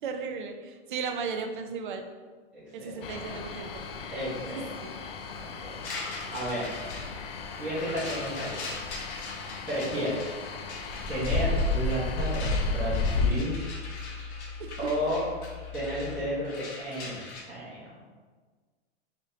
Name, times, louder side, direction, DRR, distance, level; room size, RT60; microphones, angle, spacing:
voice 1, 0.0-2.1 2.7-3.7 4.5-4.9 14.6-14.8, right 5 dB, 50° right, 5 dB, 0.4 m, -35 dB
voice 2, 2.5-3.5 4.1-4.6 5.4-5.8 6.3-6.7 7.6-8.7 9.7-10.3 11.1-13.5 14.8-15.3 15.7-18.0, equal, 5° right, -12 dB, 0.8 m, -33 dB
sound 1, 3.0-13.3, left 3 dB, 60° left, 0.5 m, -32 dB
sound 2, 5.8-17.4, left 3 dB, 80° left, 0.9 m, -42 dB
sound 3, 10.7-16.3, left 2 dB, 35° left, 0.8 m, -42 dB
3.9 x 2.6 x 3.2 m, 1.4 s
supercardioid pair, 165°, 33 cm